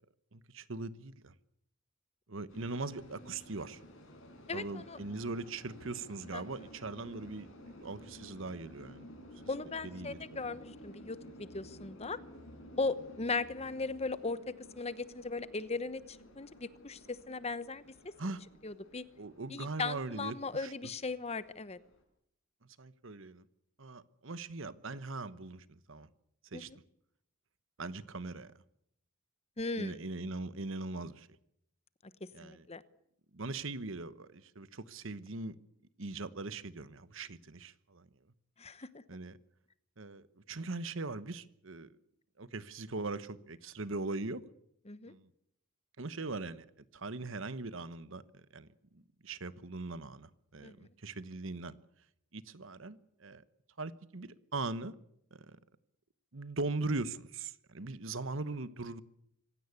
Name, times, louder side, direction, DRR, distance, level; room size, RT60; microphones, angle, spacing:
voice 1, 0.3-1.3 2.3-3.8 4.5-9.1 9.8-10.2 18.2-18.4 19.2-20.7 22.8-23.4 23.8-26.1 26.5-26.7 27.8-28.5 29.8-31.3 32.3-32.7 33.3-35.6 36.0-38.1 39.1-39.4 40.0-41.9 42.4-44.4 45.1-45.3 46.0-48.7 48.9-51.8 52.3-53.4 53.8-55.0 55.3-55.6 56.3-59.0, right 3 dB, 60° right, 1.1 m, -40 dB
sound 1, 2.5-22.0, equal, 65° left, 7.2 m, -54 dB
voice 2, 4.5-5.0 6.3-6.4 9.5-12.2 12.8-17.8 18.6-19.0 19.5-21.8 26.5-26.8 29.6-30.0 32.4-32.8 38.6-39.0 44.9-45.1 50.6-50.9, left 3 dB, 30° left, 1.0 m, -38 dB
25.5 x 16.5 x 8.3 m
head